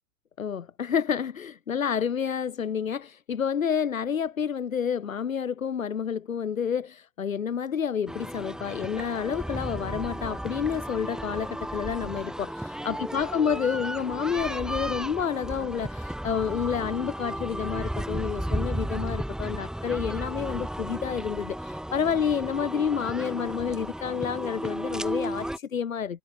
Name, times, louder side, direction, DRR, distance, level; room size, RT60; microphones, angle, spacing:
voice 1, 0.4-26.2, left 7 dB, 70° left, 5.6 m, -29 dB
sound 1, 8.1-25.6, right 1 dB, ahead, 5.4 m, -34 dB
figure-of-eight pair, 90°, 41 cm